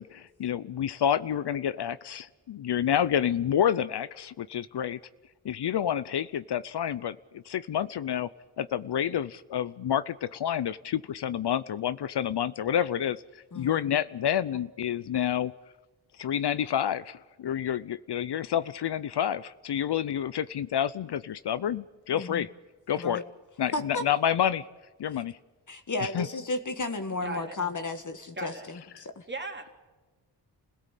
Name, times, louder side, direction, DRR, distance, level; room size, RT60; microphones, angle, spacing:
voice 1, 0.0-5.0 5.4-8.3 8.6-13.2 13.6-15.5 16.2-22.5 22.9-23.2 23.6-24.7 25.0-25.4 26.0-26.3, left 9 dB, 70° left, 16 dB, 0.7 m, -29 dB
voice 2, 13.5-13.9 22.1-22.5 23.0-23.2 23.7-24.0 25.1-25.2 25.7-29.2, left 2 dB, 45° left, 9 dB, 1.7 m, -34 dB
voice 3, 27.2-27.6 28.3-28.7 29.3-29.7, right 2 dB, 25° right, 4 dB, 3.1 m, -37 dB
28.0 x 17.0 x 8.3 m, 1.2 s
wide cardioid pair, 80°, 41 cm